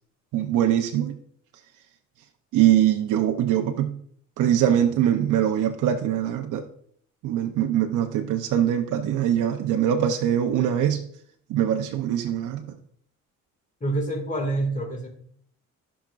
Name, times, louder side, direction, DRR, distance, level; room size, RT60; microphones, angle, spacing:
voice 1, 0.3-1.2 2.5-3.9 4.4-6.6 7.2-11.0 11.5-12.8, right 10 dB, 90° right, 4 dB, 0.8 m, -22 dB
voice 2, 13.8-15.1, right 2 dB, 25° left, 3 dB, 2.2 m, -27 dB
15.5 x 6.0 x 2.5 m, 0.63 s
cardioid pair, 90°, 30 cm